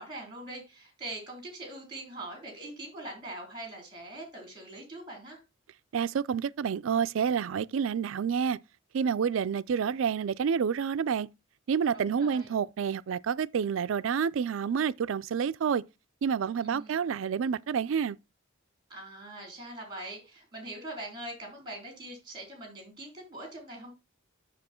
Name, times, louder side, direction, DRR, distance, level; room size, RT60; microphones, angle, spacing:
voice 1, 0.0-5.4 11.9-12.5 16.6-17.0 18.9-23.9, right 1 dB, 20° right, 3.8 m, -42 dB
voice 2, 5.9-8.6 8.9-11.3 11.7-15.8 16.2-18.2, right 7 dB, 70° right, 0.4 m, -28 dB
7.6 x 6.7 x 4.3 m
head